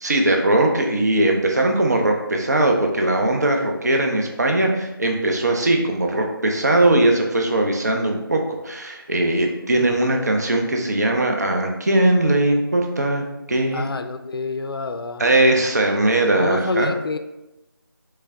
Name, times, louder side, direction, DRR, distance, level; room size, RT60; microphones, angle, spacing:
voice 1, 0.0-13.9 15.2-16.9, right 1 dB, 45° right, 2 dB, 0.5 m, -20 dB
voice 2, 9.4-9.9 13.7-15.6 16.4-17.2, left 3 dB, 75° left, 9 dB, 0.4 m, -29 dB
3.6 x 3.3 x 3.4 m, 0.98 s
figure-of-eight pair, 175°, 13 cm